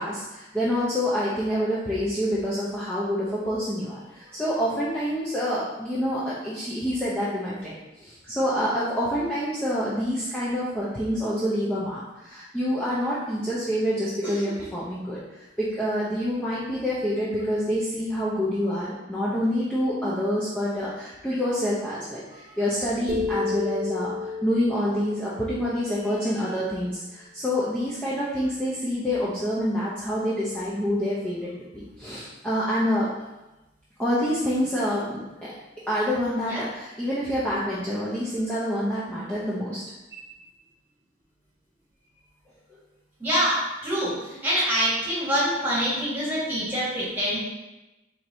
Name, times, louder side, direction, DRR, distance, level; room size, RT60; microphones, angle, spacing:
voice 1, 0.0-15.2 15.6-24.1 24.4-33.1 34.0-35.5 35.9-39.8, equal, 5° left, -9 dB, 0.5 m, -27 dB
sound 1, 23.1-26.6, left 4 dB, 35° right, 0.9 m, -32 dB
voice 2, 43.2-47.4, equal, 10° right, -8 dB, 1.5 m, -26 dB
4.4 x 3.1 x 2.6 m, 1.0 s
head